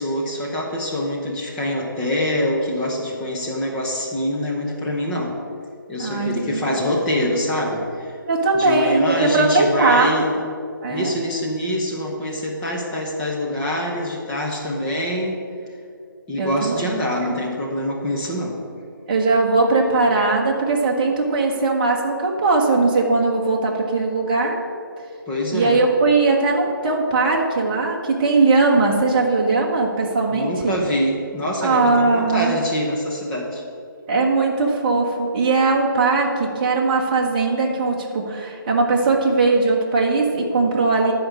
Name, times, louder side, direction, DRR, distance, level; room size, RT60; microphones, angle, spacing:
voice 1, 0.0-5.4 5.9-8.2 8.5-10.4 10.9-15.4 16.3-18.6 25.3-25.8 30.3-33.6, left 1 dB, 5° left, -3 dB, 0.6 m, -25 dB
voice 2, 6.0-6.8 8.3-10.2 10.8-11.1 16.4-16.9 19.1-24.6 25.5-30.7 31.6-32.5 34.1-41.1, right 3 dB, 25° right, -1 dB, 1.2 m, -19 dB
10.5 x 5.0 x 7.4 m, 2.3 s
hypercardioid pair, 165°, 12 cm